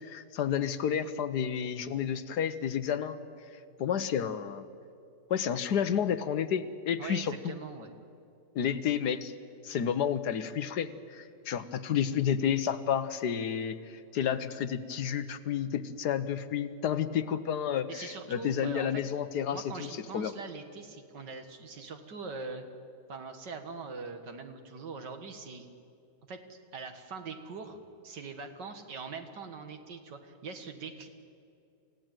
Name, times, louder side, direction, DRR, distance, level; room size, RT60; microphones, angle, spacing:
voice 1, 0.0-3.2 3.8-4.6 5.3-7.6 8.5-9.3 9.6-19.9 20.1-20.3, left 8 dB, 70° left, 12 dB, 1.5 m, -31 dB
voice 2, 7.0-7.9 17.9-19.0 19.5-22.6 23.1-25.7 26.3-27.8 28.0-31.1, right 4 dB, 80° right, 6 dB, 2.4 m, -42 dB
28.5 x 16.0 x 9.1 m, 2.5 s
omnidirectional pair, 1.8 m